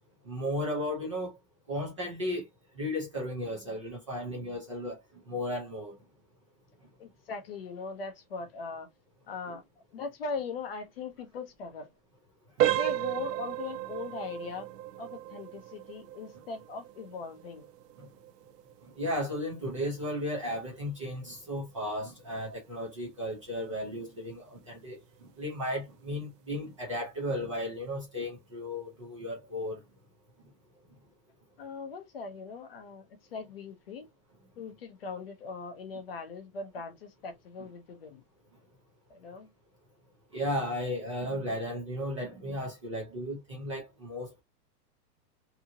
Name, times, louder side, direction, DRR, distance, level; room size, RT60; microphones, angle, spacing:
voice 1, 0.2-1.4 1.7-2.5 2.8-6.0 9.5-9.6 18.0-18.1 18.8-29.8 37.6-37.7 40.3-44.4, left 1 dB, 20° right, 0.4 m, -35 dB
voice 2, 7.0-8.9 9.3-9.6 9.9-11.9 12.6-14.7 15.0-17.7 31.6-33.0 33.3-34.1 34.6-38.2 39.1-39.5, left 4 dB, 40° left, 0.5 m, -40 dB
sound 1, 12.6-23.3 23.6-23.8 24.4-24.5 25.0-25.2, right 13 dB, 80° right, 0.6 m, -35 dB
2.8 x 2.5 x 2.6 m
supercardioid pair, 170°, 48 cm